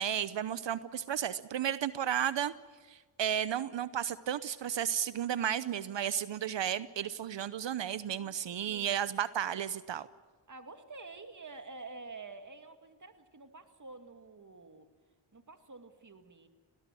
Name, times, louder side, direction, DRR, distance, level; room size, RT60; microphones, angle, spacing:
voice 1, 0.0-2.5 2.9-10.1, right 9 dB, 65° right, 16 dB, 0.8 m, -33 dB
voice 2, 8.2-9.1 10.5-14.9 15.3-16.5, right 3 dB, 40° right, 7 dB, 2.3 m, -49 dB
19.0 x 18.0 x 9.1 m, 1.4 s
cardioid pair, 45°, 48 cm